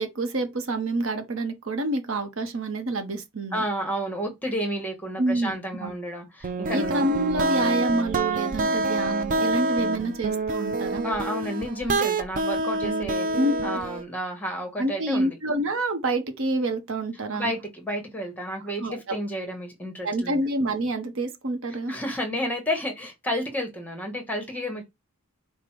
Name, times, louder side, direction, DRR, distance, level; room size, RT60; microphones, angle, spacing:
voice 1, 0.0-3.7 5.2-5.5 5.8-5.9 6.7-11.0 13.3-13.8 14.8-17.5 18.8-19.0 20.0-21.9, right 2 dB, 60° right, 0.8 m, -27 dB
voice 2, 3.5-7.0 11.0-13.3 13.6-15.4 17.3-20.4 21.9-24.9, equal, 5° left, 1.1 m, -31 dB
sound 1, 6.4-14.0, right 2 dB, 35° right, 0.4 m, -26 dB
5.1 x 2.1 x 4.5 m
head